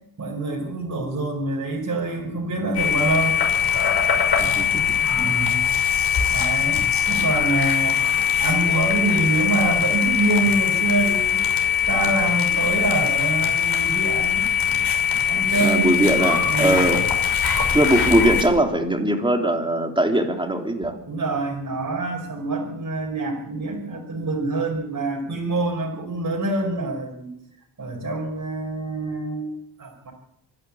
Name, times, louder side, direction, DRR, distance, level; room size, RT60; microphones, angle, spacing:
voice 1, 0.2-3.4 5.1-5.7 6.3-8.0 8.4-11.4 11.8-14.5 15.3-15.8 16.1-17.0 21.1-27.3 27.8-30.1, right 2 dB, 35° right, -2 dB, 5.6 m, -26 dB
sound 1, 2.7-18.4, left 8 dB, 55° left, 6.1 m, -21 dB
voice 2, 4.4-4.8 15.6-17.0 17.7-21.0, right 1 dB, 10° right, 3 dB, 3.5 m, -20 dB
25.0 x 12.0 x 8.8 m, 0.81 s
cardioid pair, 105°, 47 cm